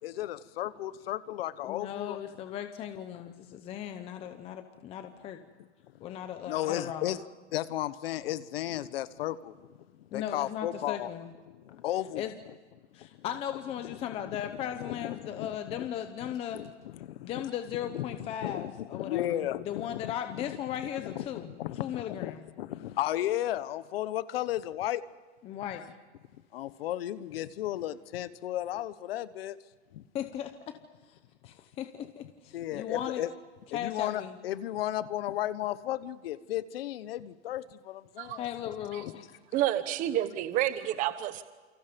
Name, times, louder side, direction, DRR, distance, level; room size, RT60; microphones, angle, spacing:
voice 1, 0.0-2.2 5.9-6.0 6.5-7.2 7.5-11.1 11.5-12.3 13.0-13.2 13.8-15.9 16.3-17.5 17.8-20.6 21.0-25.0 25.6-25.9 26.5-29.6 29.9-30.1 32.5-33.3 33.7-39.3, left 13 dB, 55° left, 1.2 m, -35 dB
voice 2, 1.7-5.4 6.0-7.1 10.1-11.3 12.2-12.3 12.9-16.6 17.2-21.5 21.8-22.4 25.4-25.9 30.1-30.8 31.1-31.2 31.4-33.2 33.7-34.4 38.4-39.2, left 10 dB, 15° left, 0.8 m, -37 dB
voice 3, 39.5-41.4, right 13 dB, 20° right, 1.1 m, -29 dB
28.5 x 25.5 x 5.3 m
supercardioid pair, 165°, 35 cm